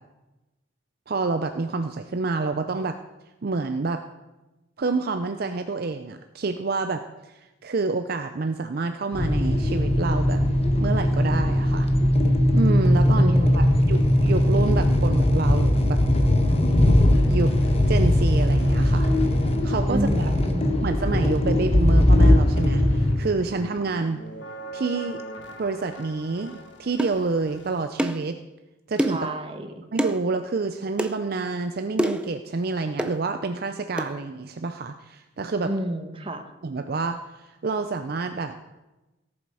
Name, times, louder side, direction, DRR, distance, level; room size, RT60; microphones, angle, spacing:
voice 1, 1.1-3.0 3.4-4.0 4.8-10.4 10.8-11.9 12.5-16.0 17.2-17.5 17.9-19.3 19.6-20.3 20.8-24.2 24.7-25.2 25.6-28.4 28.9-29.3 29.9-35.7 36.6-37.2 37.6-38.6, right 3 dB, 55° right, 8 dB, 0.5 m, -28 dB
sound 1, 9.1-23.1, left 1 dB, 30° left, 1.2 m, -20 dB
voice 2, 13.2-13.9 19.9-20.9 29.1-29.8 35.6-36.5, right 1 dB, 30° right, 7 dB, 1.1 m, -30 dB
sound 2, 17.1-27.9, right 2 dB, 70° left, 1.7 m, -41 dB
sound 3, 27.0-27.2 28.0-28.3 29.0-29.3 30.0-30.2 31.0-31.2 32.0-32.3 33.0-33.2 34.0-34.1, right 1 dB, 5° right, 0.5 m, -26 dB
17.5 x 7.2 x 4.9 m, 1.1 s
head